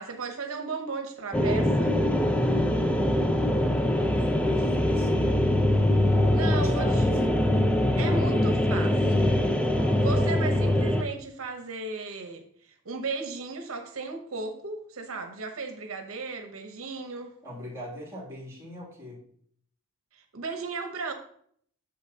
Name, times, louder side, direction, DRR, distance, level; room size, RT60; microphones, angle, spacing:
voice 1, 0.0-2.0 6.3-7.0 8.0-9.4 10.0-17.3 20.1-21.1, right 4 dB, 75° right, 5 dB, 0.8 m, -35 dB
sound 1, 1.3-11.0, left 1 dB, 5° left, 0.5 m, -23 dB
voice 2, 3.2-5.5 6.0-7.2 8.0-8.3 9.7-10.1 17.4-19.2, equal, 15° right, -3 dB, 2.5 m, -39 dB
8.5 x 7.0 x 2.8 m, 0.63 s
head